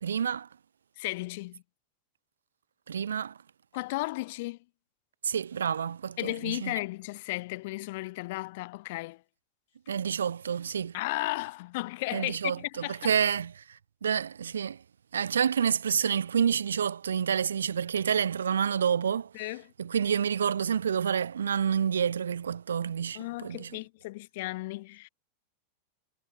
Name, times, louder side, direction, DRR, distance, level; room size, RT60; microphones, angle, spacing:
voice 1, 0.0-0.5 2.9-3.3 5.2-6.7 9.9-11.0 12.1-12.6 13.0-13.6 14.0-14.8 15.1-19.3 19.8-23.7, right 7 dB, 70° right, 0.4 m, -28 dB
voice 2, 1.0-1.6 3.7-4.6 6.2-9.2 10.9-13.1 19.3-19.7 23.1-25.1, left 21 dB, 50° left, 1.0 m, -34 dB
figure-of-eight pair, 90°, 0 cm